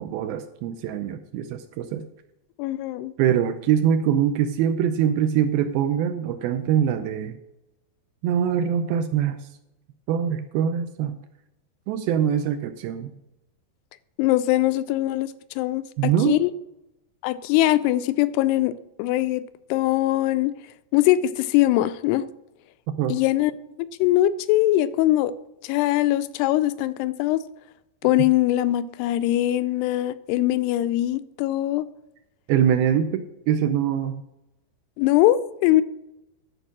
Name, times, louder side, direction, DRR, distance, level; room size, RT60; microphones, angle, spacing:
voice 1, 0.0-2.0 3.2-7.4 8.2-9.5 10.1-11.2 11.9-13.1 16.0-16.4 23.0-23.2 32.5-34.2, right 9 dB, 80° right, 9 dB, 2.3 m, -23 dB
voice 2, 2.6-3.1 14.2-16.5 17.2-18.7 19.0-19.4 19.7-20.5 20.9-22.3 23.1-23.5 24.0-25.3 25.6-27.4 28.0-31.9 35.0-35.8, left 15 dB, 85° left, 14 dB, 2.7 m, -22 dB
12.0 x 4.9 x 7.3 m, 0.90 s
omnidirectional pair, 4.6 m